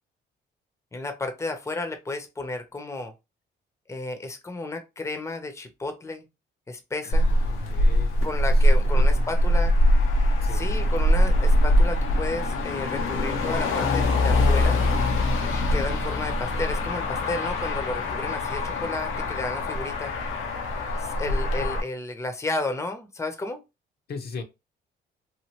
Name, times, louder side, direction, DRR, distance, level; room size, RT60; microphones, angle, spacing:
voice 1, 0.9-3.1 3.9-6.3 6.7-7.2 8.2-9.7 10.4-14.8 15.5-20.1 21.0-23.6, left 2 dB, 15° left, 0.7 m, -32 dB
voice 2, 7.0-9.3 10.4-10.9 24.1-24.4, left 4 dB, 50° left, 0.7 m, -40 dB
Motor vehicle (road), 7.1-21.8, left 1 dB, 85° left, 0.8 m, -23 dB
3.1 x 2.5 x 2.8 m
cardioid pair, 90°, 20 cm